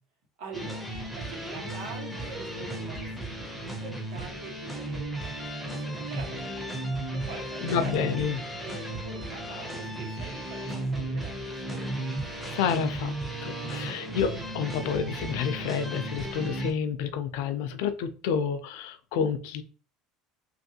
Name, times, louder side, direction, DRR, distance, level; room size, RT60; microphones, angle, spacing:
voice 1, 0.4-12.1, right 4 dB, 75° right, 1.2 m, -44 dB
sound 1, 0.5-16.7, right 1 dB, ahead, 0.5 m, -35 dB
voice 2, 7.6-8.4 12.5-13.1 13.4-19.6, left 7 dB, 75° left, 0.4 m, -29 dB
3.0 x 2.6 x 2.8 m
cardioid pair, 165°, 0 cm